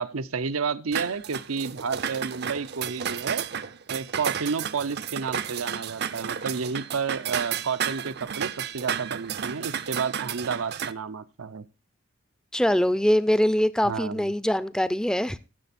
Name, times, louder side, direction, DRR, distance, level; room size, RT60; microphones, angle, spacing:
voice 1, 0.0-3.5 3.9-11.6 13.8-14.3, right 5 dB, 90° right, 0.7 m, -31 dB
sound 1, 0.9-10.9, right 8 dB, 50° right, 0.5 m, -32 dB
voice 2, 12.5-15.4, equal, 5° left, 0.4 m, -23 dB
15.0 x 6.8 x 4.2 m
head